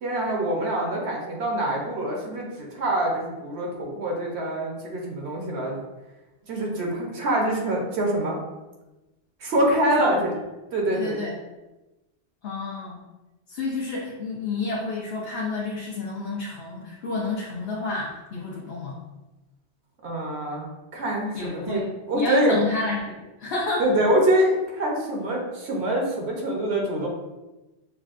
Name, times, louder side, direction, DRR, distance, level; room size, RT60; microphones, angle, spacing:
voice 1, 0.0-5.8 6.5-8.4 9.4-10.3 10.7-11.2 20.0-22.6 23.8-27.1, right 1 dB, 75° right, -1 dB, 1.1 m, -25 dB
voice 2, 10.9-11.3 12.4-13.0 13.5-19.0 21.3-21.8 22.1-23.9, left 3 dB, 65° left, -4 dB, 0.9 m, -30 dB
6.0 x 2.1 x 2.4 m, 1.1 s
omnidirectional pair, 1.1 m